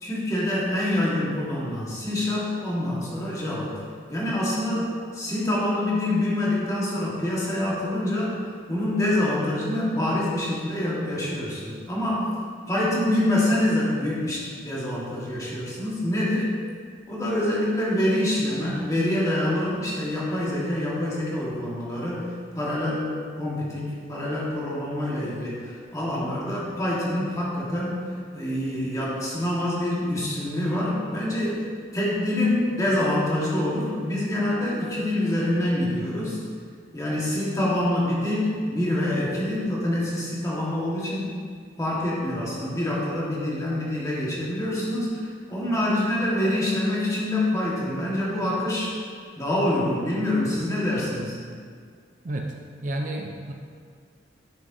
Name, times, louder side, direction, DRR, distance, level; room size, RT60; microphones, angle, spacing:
voice 1, 0.0-3.8 4.1-8.4 8.7-12.3 12.7-16.5 17.1-22.3 22.5-23.1 23.4-28.0 28.3-31.6 31.9-36.4 36.9-41.3 41.8-49.0 49.4-51.4, left 1 dB, 20° left, -6 dB, 1.6 m, -26 dB
voice 2, 52.8-53.5, right 1 dB, 45° right, 1 dB, 0.5 m, -30 dB
9.9 x 6.4 x 2.7 m, 2.1 s
head